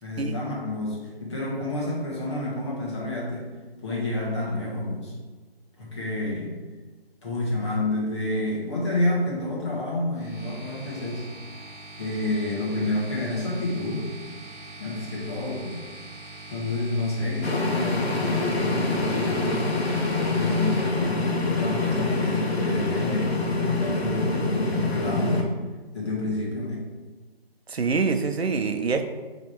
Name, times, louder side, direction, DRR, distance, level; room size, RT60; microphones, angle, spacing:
voice 1, 0.0-3.5 3.8-5.1 5.8-6.6 7.2-11.3 12.0-14.1 14.8-15.8 16.5-19.7 20.2-25.5 25.9-26.8, left 2 dB, 25° left, -5 dB, 1.4 m, -29 dB
sound 1, 10.1-20.8, right 2 dB, 15° right, 1.0 m, -43 dB
sound 2, 17.4-25.4, left 3 dB, 80° left, 1.2 m, -25 dB
voice 2, 27.7-29.1, right 4 dB, 80° right, 7 dB, 0.7 m, -25 dB
7.2 x 3.3 x 4.5 m, 1.3 s
figure-of-eight pair, 165°, 31 cm